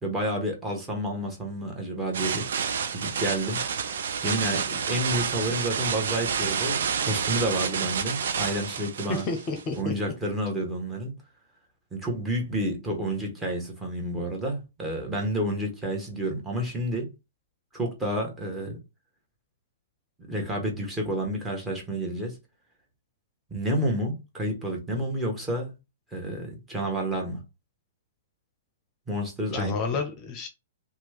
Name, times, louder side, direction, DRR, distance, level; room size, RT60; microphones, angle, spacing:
voice 1, 0.0-2.4 2.9-3.6 4.2-9.3 9.8-11.2 11.9-17.1 17.7-18.8 20.3-22.4 23.5-25.8 26.1-27.4 29.1-29.8, right 1 dB, 15° right, 1.2 m, -30 dB
sound 1, 2.1-9.8, right 6 dB, 65° right, 0.5 m, -29 dB
voice 2, 9.1-9.9 29.5-30.5, left 4 dB, 30° left, 0.7 m, -30 dB
2.9 x 2.3 x 3.4 m
figure-of-eight pair, 115°, 0 cm